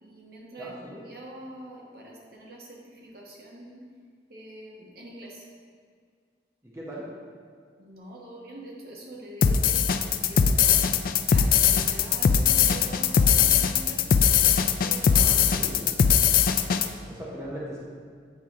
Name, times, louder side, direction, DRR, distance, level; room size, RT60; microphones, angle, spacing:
voice 1, 0.0-0.7 1.1-2.6 3.1-3.8 4.3-5.3 7.8-9.8 10.2-10.8 11.3-14.0 14.8-15.3 16.2-16.3, right 1 dB, 55° right, -2 dB, 1.2 m, -44 dB
voice 2, 0.6-1.0 6.6-7.0 15.1-16.0 17.1-17.8, equal, 15° right, -5 dB, 0.9 m, -39 dB
sound 1, 9.4-16.9, left 7 dB, 50° left, 0.3 m, -20 dB
8.2 x 4.6 x 3.7 m, 2.1 s
head